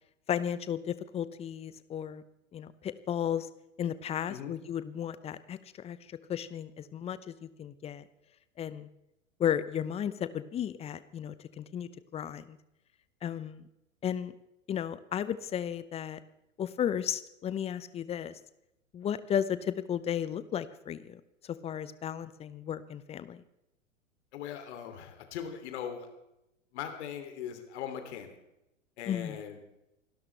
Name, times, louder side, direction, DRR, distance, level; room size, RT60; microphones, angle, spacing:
voice 1, 0.3-2.2 2.5-3.5 3.8-8.0 8.6-8.9 9.4-12.6 13.2-13.6 14.0-14.3 14.7-16.2 16.6-18.4 18.9-23.4 29.1-29.4, left 9 dB, 15° left, 15 dB, 0.7 m, -34 dB
voice 2, 24.3-26.1 26.7-28.3 29.0-29.6, left 9 dB, 55° left, 6 dB, 3.0 m, -40 dB
27.5 x 12.5 x 3.4 m, 0.87 s
figure-of-eight pair, 105°, 40 cm